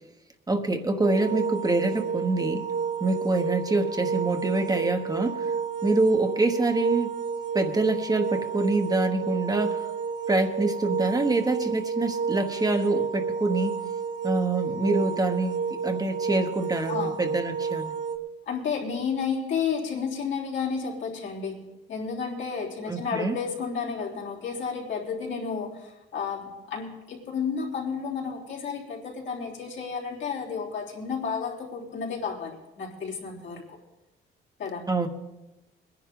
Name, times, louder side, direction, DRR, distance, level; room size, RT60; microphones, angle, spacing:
voice 1, 0.5-2.7 3.0-5.5 5.8-7.1 7.5-9.9 10.3-13.7 14.2-15.6 15.8-17.9 22.9-23.4 34.9-35.1, right 2 dB, 20° right, 5 dB, 1.2 m, -25 dB
sound 1, 1.0-18.2, right 6 dB, 70° right, 1.5 m, -30 dB
voice 2, 18.4-33.8 34.6-34.9, left 6 dB, 75° left, -4 dB, 3.5 m, -32 dB
21.0 x 10.5 x 3.8 m, 1.0 s
cardioid pair, 90°, 20 cm